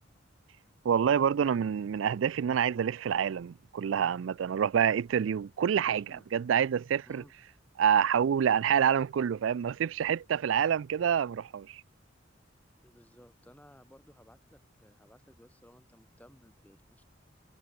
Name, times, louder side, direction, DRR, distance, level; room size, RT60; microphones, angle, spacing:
voice 1, 0.8-7.2 7.8-11.8, right 8 dB, 90° right, 0.4 m, -27 dB
voice 2, 5.9-6.3 7.1-7.3 12.8-17.0, equal, 10° left, 5.4 m, -58 dB
head